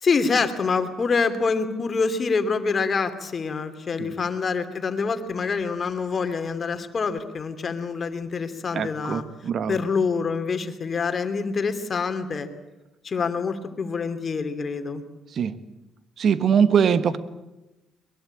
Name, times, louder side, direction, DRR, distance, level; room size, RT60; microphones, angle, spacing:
voice 1, 0.0-9.2 9.7-12.5 13.0-15.0, left 5 dB, 45° left, 9 dB, 2.9 m, -26 dB
voice 2, 8.7-9.8 15.3-15.6 16.2-17.2, right 7 dB, 55° right, 13 dB, 1.5 m, -22 dB
22.5 x 22.0 x 8.8 m, 1.0 s
hypercardioid pair, 55°, 0 cm